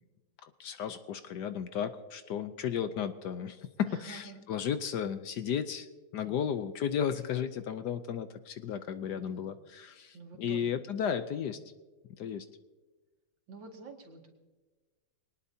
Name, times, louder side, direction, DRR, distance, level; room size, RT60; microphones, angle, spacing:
voice 1, 0.4-5.9 6.1-11.6 12.2-12.4, left 8 dB, 70° left, 10 dB, 1.2 m, -34 dB
voice 2, 3.9-4.5 6.2-6.4 9.0-9.6 10.1-10.8 11.3-11.6 13.5-14.3, right 3 dB, 70° right, 2 dB, 2.9 m, -50 dB
22.0 x 19.0 x 2.8 m, 1.2 s
omnidirectional pair, 2.1 m